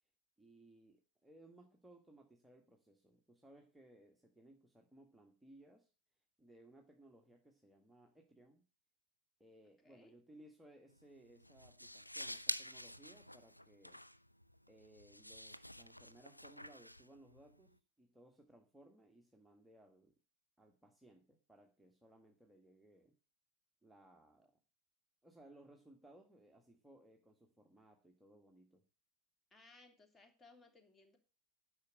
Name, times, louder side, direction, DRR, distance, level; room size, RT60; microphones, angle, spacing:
voice 1, 0.4-5.9 6.4-8.6 9.4-14.0 14.7-20.1 20.6-23.1 23.8-24.5 25.2-28.8, right 1 dB, 5° right, 2 dB, 1.6 m, -63 dB
voice 2, 9.8-10.2 29.5-31.2, left 3 dB, 15° left, 6 dB, 3.0 m, -63 dB
sound 1, 10.9-17.7, left 1 dB, 90° left, 0.5 m, -48 dB
10.5 x 6.2 x 8.3 m, 0.34 s
figure-of-eight pair, 90°, 0 cm